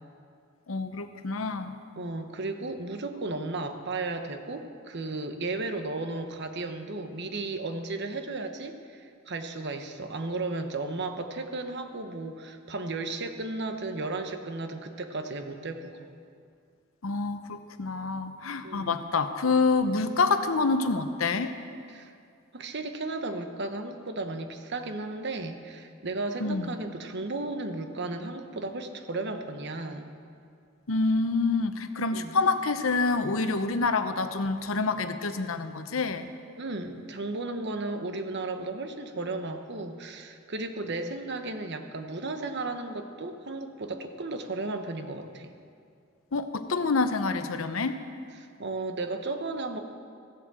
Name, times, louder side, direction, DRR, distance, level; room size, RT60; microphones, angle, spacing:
voice 1, 0.7-1.8 17.0-21.6 26.4-26.7 30.9-36.3 46.3-48.0, left 3 dB, 85° left, 9 dB, 0.8 m, -27 dB
voice 2, 2.0-16.1 18.6-19.0 19.9-20.0 21.9-22.1 22.5-30.1 32.1-32.3 36.6-45.5 48.4-49.8, right 2 dB, 60° right, 7 dB, 1.0 m, -34 dB
15.5 x 8.3 x 7.5 m, 2.3 s
head